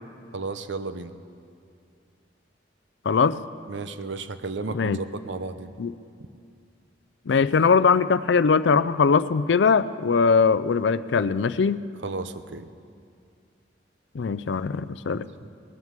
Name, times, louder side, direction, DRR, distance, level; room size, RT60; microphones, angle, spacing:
voice 1, 0.3-1.1 3.7-5.7 12.0-12.7 15.1-15.5, right 3 dB, 80° right, 11 dB, 0.7 m, -34 dB
voice 2, 3.1-3.4 4.7-5.0 5.8-5.9 7.3-11.8 14.1-15.3, left 5 dB, 75° left, 16 dB, 0.4 m, -21 dB
19.0 x 9.3 x 7.4 m, 2.4 s
head